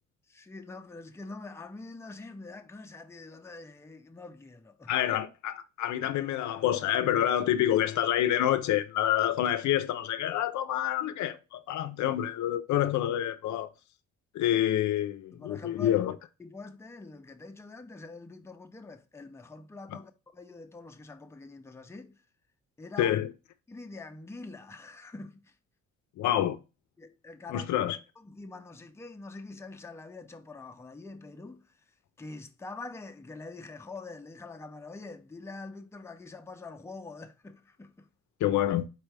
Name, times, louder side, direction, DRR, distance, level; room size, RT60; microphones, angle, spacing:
voice 1, 0.3-5.0 15.3-16.0 16.4-22.2 22.8-23.1 23.7-25.6 27.0-27.7 28.2-31.8 32.2-38.1, left 3 dB, 10° left, 0.5 m, -45 dB
voice 2, 4.9-13.7 14.3-16.2 23.0-23.3 26.2-26.6 27.5-28.0 38.4-38.9, left 12 dB, 70° left, 0.5 m, -27 dB
4.4 x 3.3 x 3.2 m
cardioid pair, 90°, 30 cm